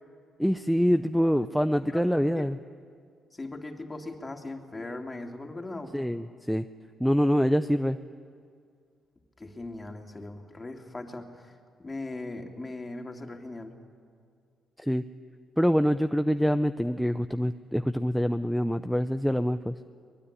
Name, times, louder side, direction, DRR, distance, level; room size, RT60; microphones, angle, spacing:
voice 1, 0.4-2.6 5.9-6.6 7.0-8.0 14.8-15.0 15.6-19.7, equal, ahead, 8 dB, 0.6 m, -25 dB
voice 2, 1.9-2.5 3.3-6.1 9.4-11.5 11.8-13.7, left 2 dB, 20° left, 3 dB, 2.9 m, -39 dB
23.0 x 21.0 x 10.0 m, 2.2 s
cardioid pair, 90°, 0 cm